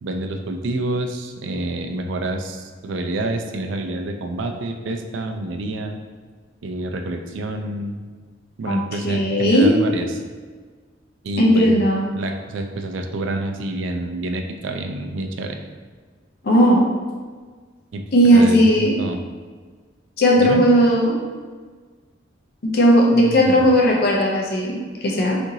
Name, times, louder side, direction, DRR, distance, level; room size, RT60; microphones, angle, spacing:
voice 1, 0.0-6.0 6.6-8.1 8.6-10.2 11.2-11.8 12.1-15.6 17.9-19.2 20.4-20.6 23.1-23.6, right 2 dB, 85° right, 5 dB, 0.4 m, -28 dB
voice 2, 8.7-9.7 11.4-12.0 16.4-16.9 18.1-18.9 20.2-21.1 22.6-25.4, equal, 55° left, -2 dB, 0.5 m, -16 dB
2.8 x 2.5 x 3.8 m, 1.5 s
head